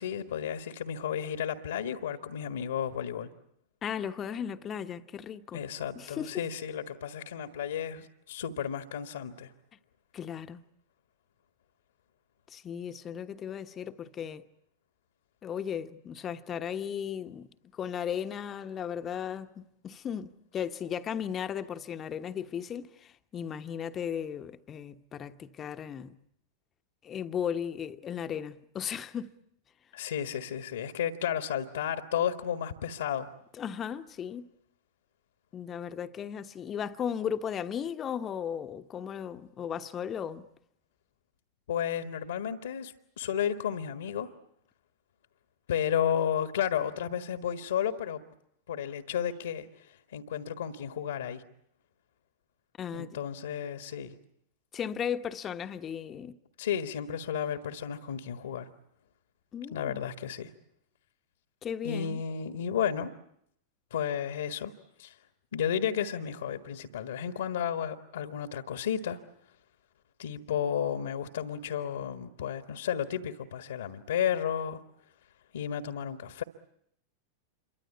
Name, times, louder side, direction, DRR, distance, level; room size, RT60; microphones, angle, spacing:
voice 1, 0.0-3.3 5.5-9.5 29.9-33.3 41.7-44.3 45.7-48.2 48.7-51.4 52.9-54.2 56.6-58.7 59.7-60.5 61.8-63.1 63.9-64.7 65.0-65.2 65.5-69.2 70.2-74.8 75.5-76.4, left 8 dB, 65° left, 1.5 m, -32 dB
voice 2, 3.8-5.6 5.9-6.4 10.1-10.6 12.5-14.4 15.4-26.2 27.0-29.3 33.6-34.5 35.5-40.5 52.8-53.2 54.7-56.4 59.5-60.0 61.6-62.2, left 8 dB, 25° left, 1.2 m, -36 dB
28.0 x 24.0 x 8.4 m
figure-of-eight pair, 90°, 0 cm